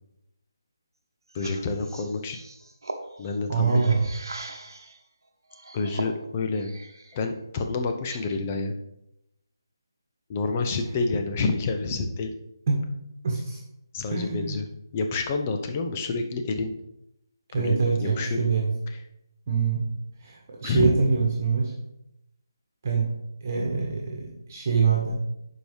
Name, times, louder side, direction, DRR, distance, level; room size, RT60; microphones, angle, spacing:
voice 1, 1.3-2.4 3.2-3.9 5.7-6.7 7.1-8.7 10.3-12.3 13.9-14.6 14.9-16.7 17.6-18.5 20.6-21.0, left 3 dB, 25° left, 5 dB, 0.8 m, -28 dB
sound 1, 1.3-5.0 5.5-7.2 7.6-8.6, right 2 dB, 65° right, 1.1 m, -40 dB
voice 2, 3.5-4.1 10.7-10.8 12.7-12.8 13.2-13.6 14.1-14.6 17.5-18.7 19.5-19.9 20.2-21.7 22.8-23.1 23.4-25.1, right 5 dB, 40° right, -2 dB, 1.5 m, -24 dB
11.5 x 4.7 x 3.3 m, 0.86 s
figure-of-eight pair, 150°, 2 cm